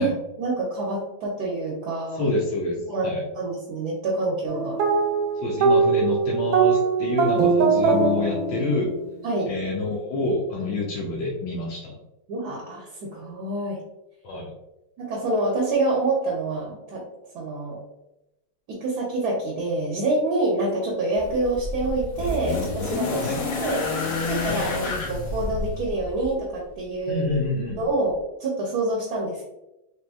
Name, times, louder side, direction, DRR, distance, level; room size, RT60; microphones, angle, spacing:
voice 1, 0.0-2.3 2.9-3.1 3.3-4.8 9.2-9.5 12.3-13.8 15.0-17.1 17.3-17.8 18.7-23.3 23.6-23.9 24.3-24.7 25.1-27.3 27.8-29.5, right 2 dB, 65° right, -2 dB, 1.0 m, -26 dB
voice 2, 2.2-2.8 3.0-3.2 5.4-8.9 9.5-11.9 14.2-14.5 23.2-23.4 24.5-24.7 27.1-27.8, left 2 dB, 85° left, -4 dB, 1.4 m, -27 dB
sound 1, 4.5-9.1, right 5 dB, 85° right, 1.4 m, -21 dB
sound 2, 21.1-26.4 27.4-27.5, left 3 dB, 60° left, 0.9 m, -29 dB
3.3 x 2.9 x 2.3 m, 0.92 s
omnidirectional pair, 2.1 m